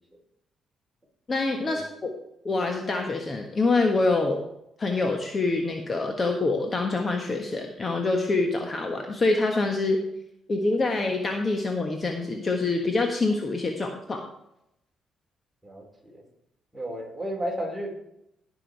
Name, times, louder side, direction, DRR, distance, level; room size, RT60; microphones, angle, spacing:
voice 1, 1.3-2.1 2.4-4.4 4.8-10.0 10.5-14.2, left 3 dB, 30° left, 3 dB, 1.4 m, -25 dB
voice 2, 15.6-16.2 16.7-17.9, equal, 5° right, -2 dB, 4.5 m, -33 dB
16.0 x 6.2 x 4.7 m, 0.80 s
cardioid pair, 95°, 0 cm